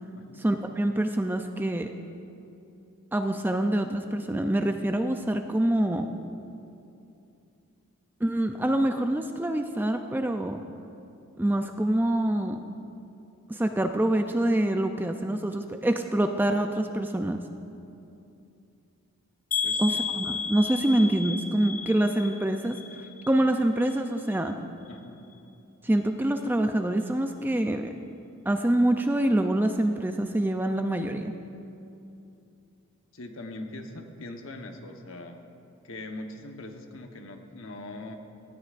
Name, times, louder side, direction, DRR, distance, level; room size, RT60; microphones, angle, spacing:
voice 1, 0.4-1.9 3.1-6.1 8.2-10.6 11.4-12.6 13.5-17.4 19.8-22.8 23.3-24.6 25.8-27.9 28.5-31.3, right 1 dB, 10° right, 6 dB, 0.3 m, -25 dB
sound 1, 19.5-23.5 23.8-24.4 24.9-25.0 25.3-25.4, left 5 dB, 35° left, 0.9 m, -33 dB
voice 2, 19.6-20.1 24.9-25.2 33.1-35.4 35.8-38.2, left 2 dB, 65° left, 4 dB, 1.0 m, -41 dB
17.5 x 13.0 x 2.5 m, 2.7 s
head